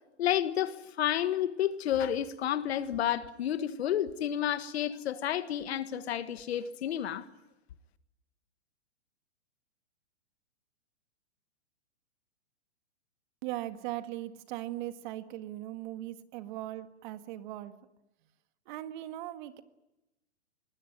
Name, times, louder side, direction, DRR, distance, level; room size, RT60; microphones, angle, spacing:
voice 1, 0.2-7.3, left 10 dB, 60° left, 1.7 m, -30 dB
voice 2, 13.4-17.7 18.7-19.6, right 14 dB, 40° right, 1.8 m, -39 dB
26.0 x 20.0 x 9.6 m
hypercardioid pair, 135°, 35 cm